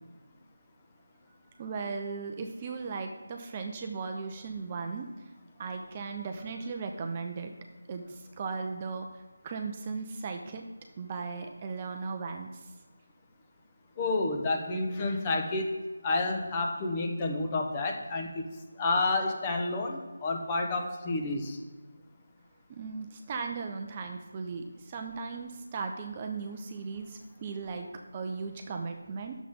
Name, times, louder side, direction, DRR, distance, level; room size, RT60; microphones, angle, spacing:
voice 1, 1.6-5.2 5.6-7.5 7.9-10.6 11.0-12.5 22.7-29.3, right 4 dB, 25° right, 4 dB, 0.6 m, -37 dB
voice 2, 14.0-15.8 16.0-18.4 18.8-21.6, left 2 dB, 20° left, 2 dB, 1.1 m, -30 dB
10.0 x 7.2 x 3.7 m, 1.3 s
figure-of-eight pair, 160°, 0 cm